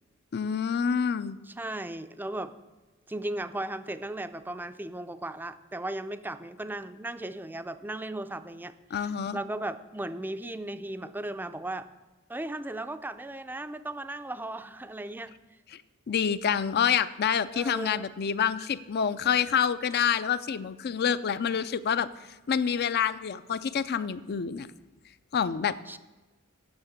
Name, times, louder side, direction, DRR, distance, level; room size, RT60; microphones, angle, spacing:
voice 1, 0.3-1.4 8.9-9.4 16.1-22.1 22.5-24.7 25.3-25.8, left 7 dB, 50° left, 14 dB, 0.4 m, -27 dB
voice 2, 1.5-2.5 3.1-11.9 12.3-15.3 17.5-18.1 18.6-18.7 25.9-26.0, right 1 dB, 10° right, 11 dB, 0.4 m, -36 dB
9.6 x 6.6 x 7.2 m, 1.2 s
head